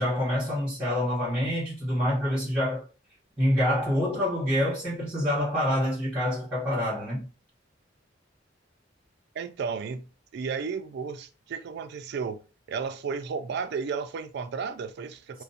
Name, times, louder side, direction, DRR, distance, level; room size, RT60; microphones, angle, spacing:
voice 1, 0.0-2.8 3.4-7.3, equal, 10° right, 1.2 m, -26 dB
voice 2, 9.3-10.1 10.3-12.4 12.7-15.4, right 5 dB, 60° right, 0.3 m, -33 dB
2.5 x 2.1 x 2.6 m
head